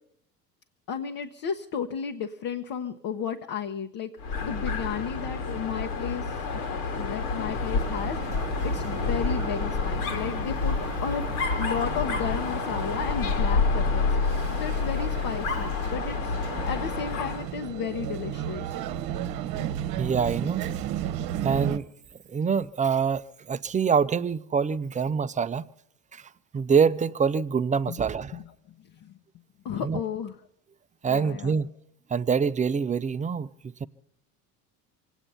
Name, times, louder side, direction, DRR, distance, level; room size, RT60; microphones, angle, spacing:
voice 1, 0.9-4.1 4.4-6.5 6.9-10.8 11.0-11.2 11.5-16.3 16.7-18.7 27.9-28.0 28.3-28.4 28.8-29.1 29.6-30.4 31.0-31.6, left 7 dB, 45° left, 1.2 m, -33 dB
Dog, 4.2-17.5, left 4 dB, 65° left, 2.4 m, -28 dB
sound 1, 7.8-21.8, right 11 dB, 50° right, 1.2 m, -35 dB
voice 2, 20.0-20.7 21.4-21.9 22.3-25.7 26.1-26.2 26.5-28.4 29.8-30.0 31.0-31.7 32.1-33.5 33.8-33.9, right 6 dB, 15° right, 0.6 m, -25 dB
26.0 x 9.3 x 5.6 m
figure-of-eight pair, 70°, 48 cm